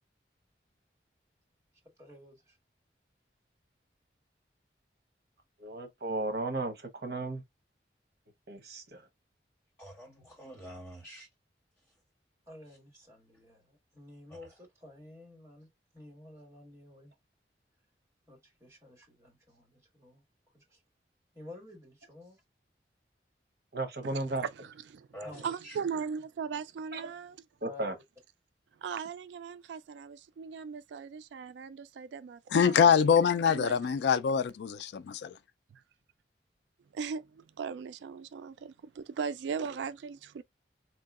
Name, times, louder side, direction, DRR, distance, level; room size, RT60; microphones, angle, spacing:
voice 1, 2.0-2.6 12.5-15.7 15.9-17.1 18.3-20.2 20.5-20.8 21.3-22.4 25.2-25.5 27.6-28.0, left 2 dB, 15° right, 1.7 m, -52 dB
voice 2, 5.6-7.4 8.5-9.0 23.7-24.4 26.9-27.0 27.6-27.9, right 2 dB, 60° right, 0.9 m, -34 dB
voice 3, 9.8-11.3 14.3-14.5 25.1-25.8, equal, 15° left, 2.3 m, -47 dB
voice 4, 24.0-25.1 25.3-27.4 28.8-33.0 33.2-33.8 35.7-35.8 36.9-40.4, right 6 dB, 80° right, 0.3 m, -39 dB
voice 5, 32.5-35.3, left 7 dB, 70° left, 0.3 m, -24 dB
4.4 x 2.7 x 2.4 m
head